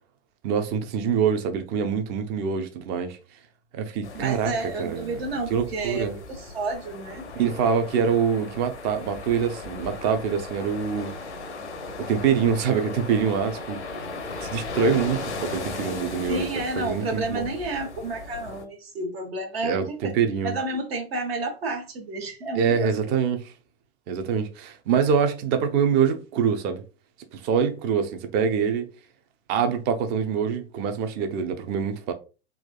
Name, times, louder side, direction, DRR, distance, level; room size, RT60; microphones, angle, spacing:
voice 1, 0.4-3.2 3.7-4.5 4.8-5.2 5.5-6.2 7.3-11.1 12.1-13.8 14.4-17.5 19.6-20.6 22.5-23.5 24.1-26.8 27.3-28.9 29.5-32.1, right 7 dB, 30° right, 0.5 m, -25 dB
sound 1, 4.0-18.6, left 3 dB, 80° left, 0.6 m, -37 dB
voice 2, 4.1-7.3 16.3-20.1 20.4-22.9, right 2 dB, 60° right, 1.0 m, -31 dB
3.4 x 2.3 x 2.2 m
figure-of-eight pair, 85°, 34 cm